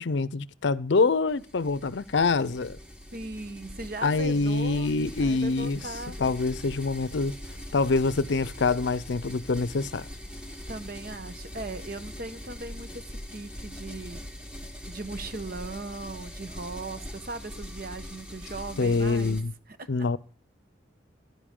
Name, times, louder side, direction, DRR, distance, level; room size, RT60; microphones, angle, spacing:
voice 1, 0.0-2.8 4.0-5.8 6.2-7.3 7.7-10.1 18.8-19.5 19.9-20.2, left 3 dB, 75° left, 0.6 m, -25 dB
sound 1, 1.3-19.4, equal, 5° right, 1.5 m, -42 dB
voice 2, 3.1-4.9 5.2-6.2 10.7-14.3 14.9-19.4 19.8-20.2, right 2 dB, 50° right, 1.0 m, -38 dB
16.0 x 10.5 x 3.7 m
head